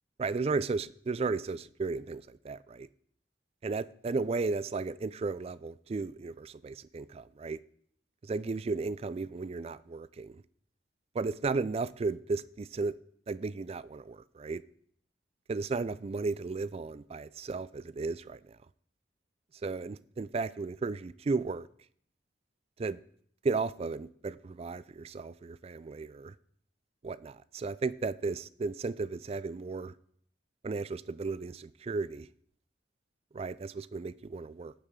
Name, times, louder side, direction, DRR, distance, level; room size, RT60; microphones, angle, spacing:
voice 1, 0.2-2.9 3.6-7.6 8.2-10.4 11.1-13.0 13.3-14.6 15.5-18.4 19.6-21.7 22.8-23.0 23.4-26.3 27.0-29.9 30.6-32.3 33.3-34.7, right 4 dB, 35° right, 0.3 m, -34 dB
17.0 x 6.9 x 3.7 m
head